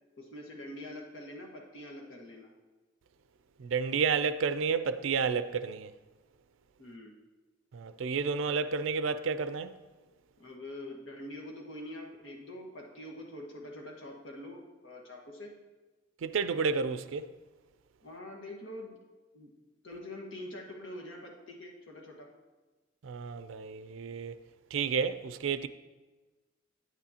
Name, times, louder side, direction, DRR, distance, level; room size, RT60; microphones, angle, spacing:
voice 1, 0.2-2.5 6.8-7.1 10.4-15.5 18.0-19.0 19.3-19.5 19.8-22.3, left 1 dB, 70° left, 1.5 m, -45 dB
voice 2, 3.6-5.9 7.7-9.7 16.2-17.3 23.0-24.4 24.7-25.7, right 5 dB, 80° right, 0.4 m, -31 dB
9.5 x 9.5 x 2.8 m
head